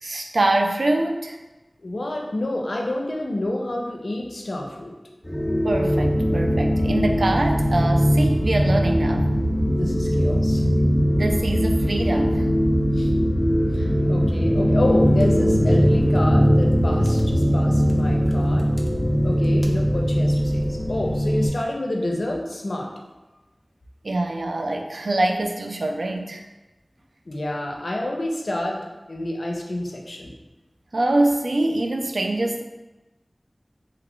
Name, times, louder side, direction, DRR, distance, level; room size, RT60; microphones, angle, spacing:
voice 1, 0.0-1.4 5.6-9.3 11.1-12.5 24.0-26.4 30.9-32.6, right 2 dB, 90° right, 4 dB, 0.3 m, -24 dB
voice 2, 1.8-4.9 9.8-10.6 12.9-13.1 13.7-18.7 19.2-22.9 27.3-30.3, left 1 dB, 80° left, 0 dB, 0.5 m, -28 dB
sound 1, 5.3-21.5, equal, 25° left, 0.5 m, -20 dB
3.2 x 2.4 x 3.5 m, 1.1 s
wide cardioid pair, 40°, 0 cm